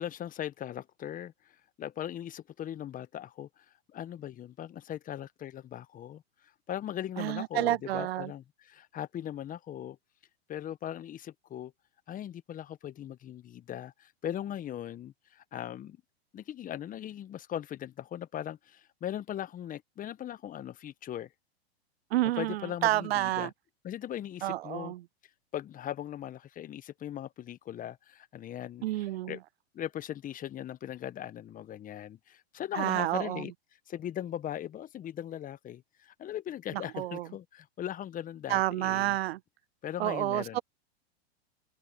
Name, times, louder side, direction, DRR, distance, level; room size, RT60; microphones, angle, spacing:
voice 1, 0.0-1.3 1.8-3.6 3.9-6.2 6.7-10.0 10.5-11.7 12.1-16.0 16.3-21.3 22.4-23.5 23.8-24.9 25.5-28.9 29.3-29.4 29.7-33.5 33.9-39.2 39.8-40.6, left 11 dB, 25° left, 1.3 m, -39 dB
voice 2, 7.2-8.3 22.1-23.5 24.4-25.0 28.8-29.4 32.7-33.5 36.7-37.3 38.5-39.4 40.0-40.6, right 15 dB, 70° right, 0.6 m, -30 dB
hypercardioid pair, 110°, 32 cm